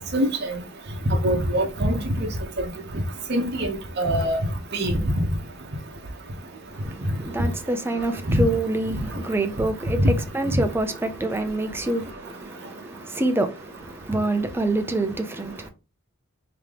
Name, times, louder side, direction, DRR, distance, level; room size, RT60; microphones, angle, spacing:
voice 1, 0.1-0.6 1.2-2.3 3.3-4.4 4.7-4.9 8.3-8.4 10.0-10.1 10.5-10.6, equal, 50° right, 0.8 m, -23 dB
voice 2, 6.7-15.7, right 2 dB, 10° right, 0.4 m, -27 dB
3.6 x 2.9 x 3.3 m
head